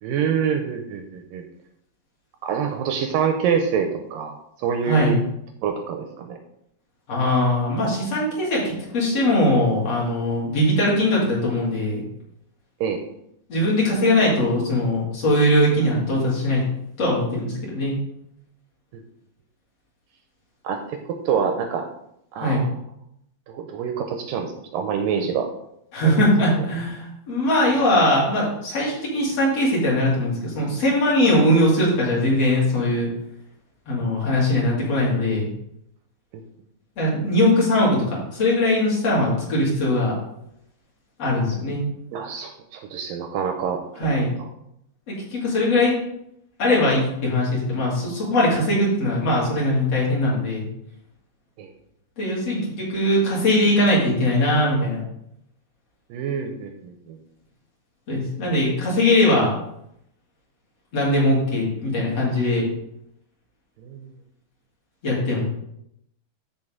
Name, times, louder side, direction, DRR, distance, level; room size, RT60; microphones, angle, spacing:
voice 1, 0.0-1.4 2.4-5.2 5.6-6.4 12.8-13.0 20.6-21.9 22.3-22.6 23.5-25.5 26.0-26.2 42.1-44.1 51.6-51.7 56.1-57.2 63.8-64.1, right 7 dB, 80° right, 4 dB, 2.1 m, -26 dB
voice 2, 4.8-5.2 7.1-12.0 13.5-16.6 17.0-17.9 22.4-22.6 25.9-33.1 33.9-35.5 37.0-40.1 41.2-41.8 44.0-44.3 45.1-45.9 46.6-50.6 52.2-55.0 58.1-59.5 60.9-62.7 65.0-65.4, left 1 dB, 40° left, -5 dB, 3.8 m, -21 dB
13.5 x 4.7 x 3.8 m, 0.76 s
omnidirectional pair, 4.6 m